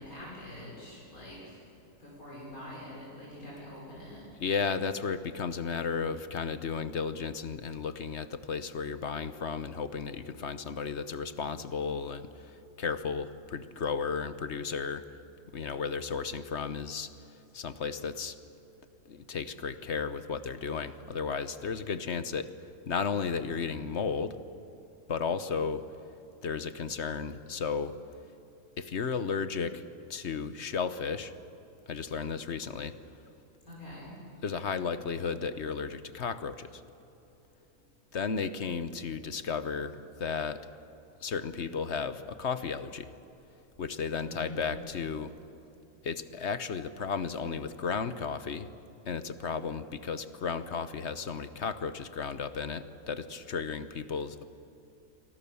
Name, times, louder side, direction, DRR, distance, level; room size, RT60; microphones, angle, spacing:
voice 1, 0.0-1.6 2.0-4.2 33.7-34.1 44.2-44.7, left 1 dB, 80° left, -5 dB, 6.5 m, -45 dB
voice 2, 4.4-15.0 15.5-17.1 17.5-18.4 19.1-24.3 25.1-25.8 26.4-27.9 28.8-29.8 30.1-31.3 31.9-32.9 34.4-36.8 38.1-40.6 41.2-43.1 43.8-45.3 46.0-48.7 49.0-54.4, left 5 dB, 55° left, 12 dB, 1.2 m, -34 dB
29.0 x 23.5 x 7.1 m, 2.9 s
omnidirectional pair, 1.5 m